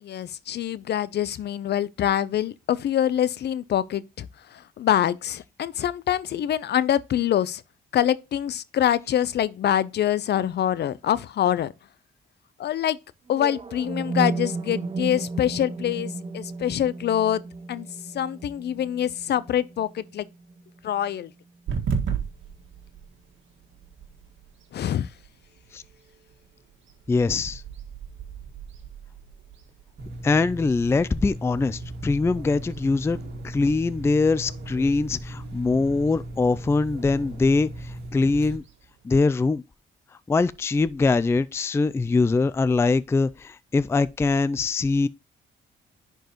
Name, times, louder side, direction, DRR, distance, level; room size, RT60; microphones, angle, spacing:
voice 1, 0.0-7.6 7.9-11.7 12.6-13.0 13.3-17.4 17.7-17.9 18.1-20.3 20.8-21.3 24.7-25.1, left 10 dB, 60° left, 0.6 m, -25 dB
sound 1, 13.3-21.3, right 3 dB, 30° right, 0.9 m, -34 dB
sound 2, 21.7-39.5, right 6 dB, 70° right, 1.7 m, -39 dB
voice 2, 27.1-27.6 30.2-33.2 33.4-38.6 39.0-39.6 40.3-45.1, left 3 dB, 15° left, 0.3 m, -23 dB
sound 3, 30.0-38.6, right 1 dB, 55° right, 2.2 m, -37 dB
10.5 x 4.5 x 3.0 m
cardioid pair, 90°, 20 cm